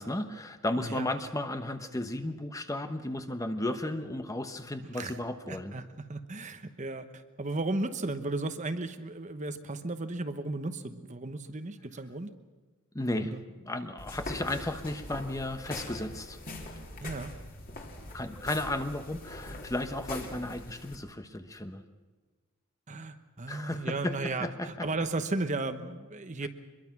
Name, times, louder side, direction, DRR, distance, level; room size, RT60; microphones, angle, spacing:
voice 1, 0.0-5.7 12.9-13.3 13.6-16.4 18.1-21.8 23.5-24.9 26.4-26.5, left 1 dB, 15° left, 8 dB, 1.0 m, -34 dB
voice 2, 0.8-1.1 4.9-5.2 5.5-12.3 13.2-13.4 17.0-17.3 22.9-26.5, right 2 dB, 35° right, 9 dB, 1.0 m, -35 dB
sound 1, 14.0-21.0, left 2 dB, 40° left, 3.0 m, -42 dB
24.5 x 22.0 x 6.0 m, 1.4 s
head